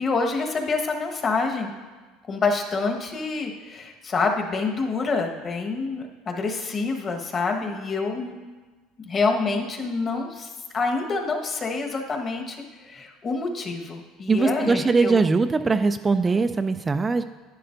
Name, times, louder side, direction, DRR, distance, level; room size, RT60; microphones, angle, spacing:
voice 1, 0.0-1.7 2.3-8.3 9.0-15.2, left 4 dB, 35° left, 2 dB, 1.3 m, -27 dB
voice 2, 14.3-17.2, right 4 dB, 20° right, 8 dB, 0.3 m, -21 dB
11.0 x 10.0 x 2.6 m, 1.3 s
supercardioid pair, 105°, 0 cm